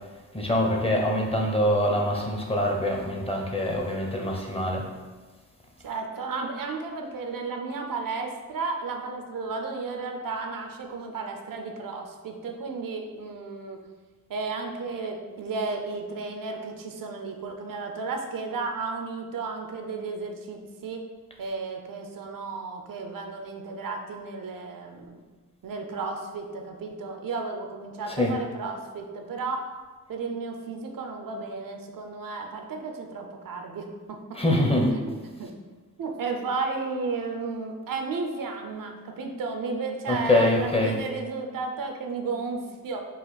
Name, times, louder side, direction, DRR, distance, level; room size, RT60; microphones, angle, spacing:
voice 1, 0.3-4.8 28.1-28.3 34.3-34.9 40.1-41.0, left 1 dB, 15° left, 0 dB, 0.7 m, -24 dB
voice 2, 5.8-13.8 14.3-21.0 21.4-25.2 25.6-29.6 30.1-34.4 34.9-35.5 36.0-43.0, right 4 dB, 70° right, 3 dB, 0.6 m, -33 dB
4.0 x 2.4 x 4.1 m, 1.3 s
cardioid pair, 70°, 34 cm